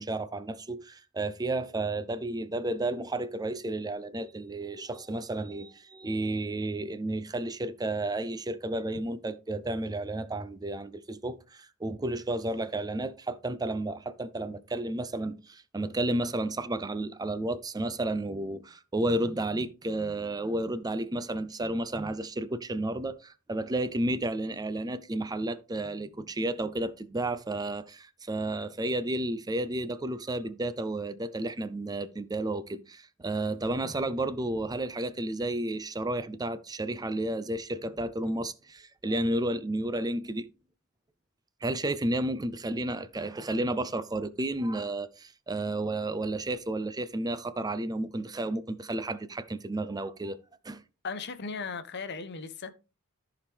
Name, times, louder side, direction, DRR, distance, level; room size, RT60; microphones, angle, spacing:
voice 1, 0.0-40.5 41.6-50.4 50.6-50.8, right 1 dB, 20° right, 0.5 m, -32 dB
voice 2, 51.0-52.7, left 4 dB, 55° left, 0.9 m, -37 dB
14.0 x 5.0 x 3.4 m
head